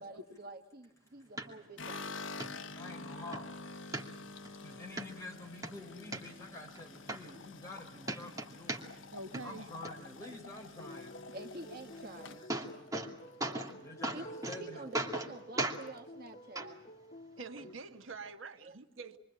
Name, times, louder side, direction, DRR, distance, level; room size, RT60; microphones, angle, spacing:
voice 1, 0.0-2.3 11.2-12.5 14.1-14.2 14.6-16.9 18.6-18.7, right 2 dB, 50° right, 6 dB, 1.6 m, -48 dB
sound 1, 1.4-1.5 1.9-2.0 2.4-2.5 3.0-3.4 3.9-4.5 5.0-5.1 5.4-6.2 6.7-6.8 7.1-7.8 8.0-9.1 9.3-9.9 11.9-12.0 12.3-13.1 13.4-13.7 14.0-14.6 14.9-15.3 15.6-15.8 16.5-16.7 17.6-17.7, right 2 dB, 15° right, 2.5 m, -37 dB
sound 2, 1.8-14.0 14.4-15.0 15.2-15.3 15.6-16.4, left 3 dB, 70° left, 1.2 m, -48 dB
voice 2, 2.7-3.5 4.6-8.9 9.4-11.1 13.6-15.1, left 2 dB, 15° left, 0 dB, 5.9 m, -48 dB
voice 3, 9.1-9.7 17.4-19.2, right 3 dB, 85° right, 7 dB, 1.5 m, -46 dB
sound 3, 10.8-17.7, left 1 dB, 35° left, 1.3 m, -51 dB
27.0 x 23.5 x 8.8 m, 0.78 s
head